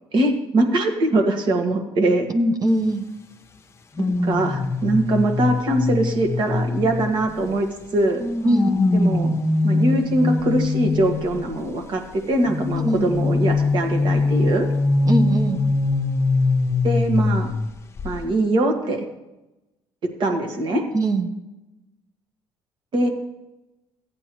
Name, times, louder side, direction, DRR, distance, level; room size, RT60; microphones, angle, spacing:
voice 1, 0.1-2.3 4.0-7.7 7.9-8.2 8.9-9.3 9.6-14.7 16.8-17.5 18.0-19.0 20.2-20.8 22.9-23.1, right 1 dB, 55° right, 4 dB, 1.8 m, -22 dB
voice 2, 2.3-3.1 8.4-8.7 12.8-13.1 15.0-15.6 20.9-21.3, right 1 dB, 40° right, 6 dB, 0.9 m, -21 dB
sound 1, 4.0-7.6 8.2-11.4 12.5-17.7 18.0-18.2, left 3 dB, 30° left, 0.9 m, -22 dB
14.5 x 8.7 x 3.1 m, 0.98 s
supercardioid pair, 85°, 10 cm